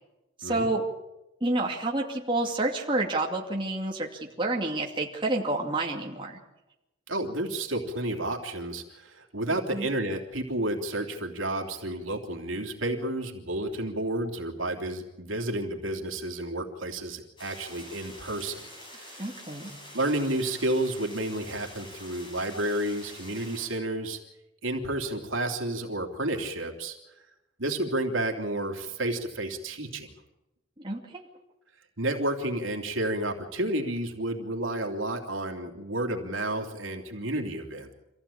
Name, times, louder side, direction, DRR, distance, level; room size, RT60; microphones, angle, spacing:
voice 1, 0.4-0.8 1.4-6.4 9.7-9.9 19.2-19.7 30.8-31.2, right 2 dB, 25° right, -1 dB, 2.4 m, -29 dB
voice 2, 7.1-19.3 19.9-24.2 24.6-27.0 27.6-30.1 32.0-37.9, right 1 dB, 75° right, 3 dB, 3.2 m, -31 dB
sound 1, 17.4-23.7, left 1 dB, 25° left, 6.7 m, -46 dB
26.0 x 15.5 x 8.7 m, 0.96 s
head